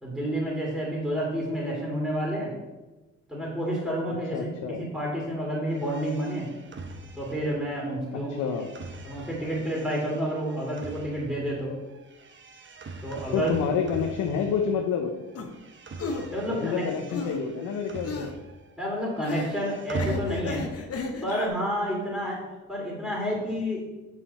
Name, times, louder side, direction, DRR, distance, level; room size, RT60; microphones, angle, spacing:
voice 1, 0.0-2.5 3.3-6.5 7.1-8.3 9.0-11.7 13.0-13.5 16.3-16.8 18.8-20.6 21.2-22.4 22.7-23.8, equal, ahead, -5 dB, 2.7 m, -29 dB
voice 2, 4.3-4.8 8.4-8.7 13.3-15.1 16.5-18.3, left 6 dB, 90° left, 2 dB, 0.8 m, -28 dB
sound 1, 5.7-15.0 15.3-18.7 19.0-20.9, right 2 dB, 40° right, 0.9 m, -41 dB
sound 2, 15.3-15.5 16.0-16.3 17.1-17.4 18.0-18.3 19.2-19.5 20.0-21.5, left 3 dB, 50° left, 1.2 m, -34 dB
7.5 x 5.7 x 4.2 m, 1.1 s
cardioid pair, 90°, 30 cm